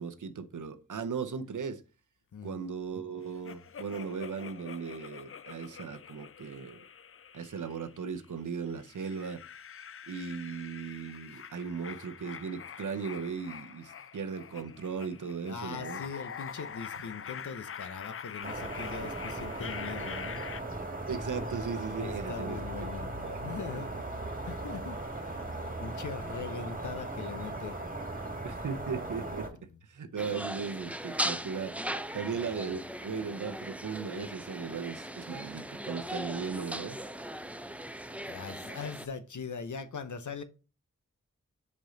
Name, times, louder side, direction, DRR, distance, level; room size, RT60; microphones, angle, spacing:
voice 1, 0.0-1.8 2.4-6.8 7.3-9.4 10.1-16.0 21.1-22.9 23.2-23.4 28.4-29.5 29.8-31.8 32.1-37.0, right 6 dB, 80° right, 0.8 m, -37 dB
voice 2, 2.3-2.7 14.6-14.7 15.4-20.4 22.0-23.9 24.5-25.4 25.8-27.8 29.7-29.8 32.6-32.8 38.3-40.4, left 5 dB, 75° left, 0.8 m, -41 dB
sound 1, 3.5-8.2 8.7-20.6, left 7 dB, 45° left, 0.4 m, -45 dB
sound 2, 18.4-29.5, right 2 dB, 30° right, 1.7 m, -38 dB
sound 3, 30.2-39.1, right 1 dB, 5° right, 0.5 m, -38 dB
5.4 x 5.1 x 3.8 m
cardioid pair, 45°, 30 cm